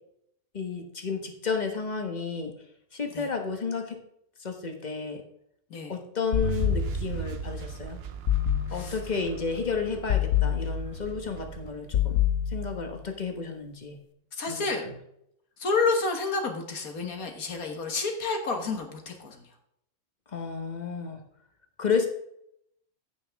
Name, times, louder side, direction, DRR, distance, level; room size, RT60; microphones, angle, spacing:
voice 1, 0.5-2.5 2.9-4.0 4.4-5.2 5.9-8.0 8.7-14.0 14.5-14.9 20.3-21.2 21.8-22.1, left 5 dB, 30° left, 5 dB, 1.3 m, -32 dB
sound 1, 6.3-7.3 8.3-9.2 10.1-11.2 11.9-13.0, left 11 dB, 60° left, 1.1 m, -27 dB
sound 2, 6.4-12.6, right 8 dB, 55° right, 0.8 m, -38 dB
voice 2, 14.3-14.8 15.6-19.4, left 4 dB, 75° left, 3 dB, 1.8 m, -29 dB
15.0 x 6.2 x 3.5 m, 0.75 s
omnidirectional pair, 1.5 m